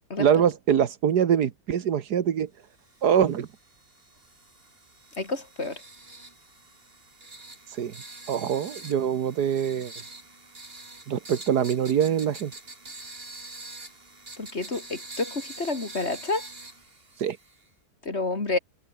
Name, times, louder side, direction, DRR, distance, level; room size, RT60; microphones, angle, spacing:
voice 1, 0.2-2.5 3.0-3.5 7.8-7.9 8.3-9.9 11.1-12.5 17.2-17.4, right 8 dB, 75° right, 1.7 m, -24 dB
sound 1, 2.8-17.7, right 2 dB, 35° right, 3.9 m, -45 dB
voice 2, 5.2-5.8 14.4-16.5 18.0-18.6, left 3 dB, 40° left, 3.1 m, -29 dB
omnidirectional pair, 1.8 m